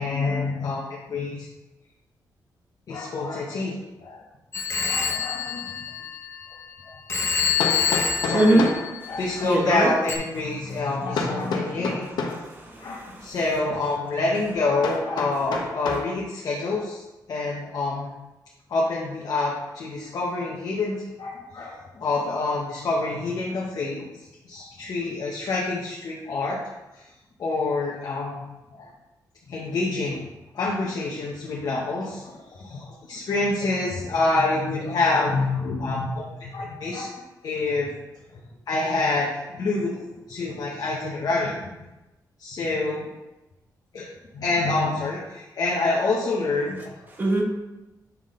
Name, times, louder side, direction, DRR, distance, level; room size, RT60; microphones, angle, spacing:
voice 1, 0.0-1.5 2.9-4.2 4.8-5.7 7.7-7.8 8.2-8.6 9.1-12.1 12.8-17.0 17.3-18.1 18.7-24.0 24.4-26.6 26.9-27.0 27.4-28.9 29.5-30.2 30.5-32.3 32.6-36.1 36.4-37.1 37.4-37.9 38.7-39.9 40.3-41.5 42.4-43.1 43.9-44.1 44.3-46.9, left 3 dB, 60° left, -3 dB, 1.0 m, -27 dB
Telephone, 4.5-6.7 7.1-9.4 10.1-10.2, left 6 dB, 35° left, 0.7 m, -27 dB
Hammer, 6.0-6.1 7.6-8.9 11.2-12.5 14.8-16.1, left 4 dB, 80° left, 0.8 m, -29 dB
voice 2, 8.1-8.6 9.0-9.9 12.3-13.3 47.1-47.4, right 1 dB, 25° right, 0 dB, 1.1 m, -23 dB
7.1 x 3.8 x 3.7 m, 1.0 s
wide cardioid pair, 130°, 7 cm